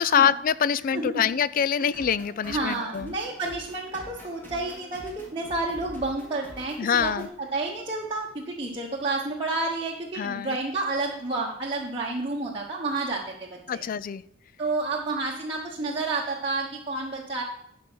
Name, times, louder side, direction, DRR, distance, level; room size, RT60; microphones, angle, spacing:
voice 1, 0.0-3.1 6.8-7.3 10.1-10.6 13.7-14.2, left 8 dB, 45° left, 18 dB, 0.3 m, -25 dB
sound 1, 1.9-7.3, equal, 10° left, 2.0 m, -45 dB
voice 2, 2.4-7.1 7.4-13.8 14.6-17.4, right 3 dB, 25° right, -3 dB, 1.1 m, -30 dB
11.0 x 5.2 x 6.2 m, 0.77 s
head